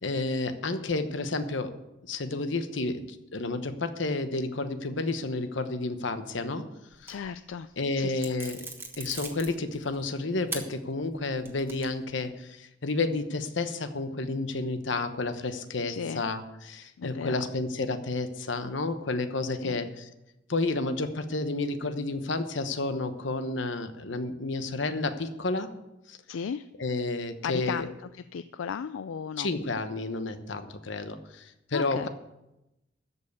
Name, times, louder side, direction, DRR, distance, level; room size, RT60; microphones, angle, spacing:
voice 1, 0.0-1.7 2.1-3.0 3.3-6.6 7.0-7.2 7.8-8.6 9.0-20.1 20.5-25.7 26.1-26.2 26.8-27.9 29.4-32.1, left 3 dB, 70° left, 9 dB, 1.0 m, -31 dB
sound 1, 6.9-7.5 8.2-10.0 10.5-10.6 11.1-12.1, right 3 dB, 10° right, 1.3 m, -39 dB
voice 2, 7.1-8.4 15.9-16.3 17.0-17.4 19.6-19.9 26.3-26.7 27.4-27.9 28.1-29.5 31.7-32.1, left 6 dB, 90° left, 12 dB, 0.4 m, -35 dB
13.5 x 5.5 x 8.0 m, 0.91 s
head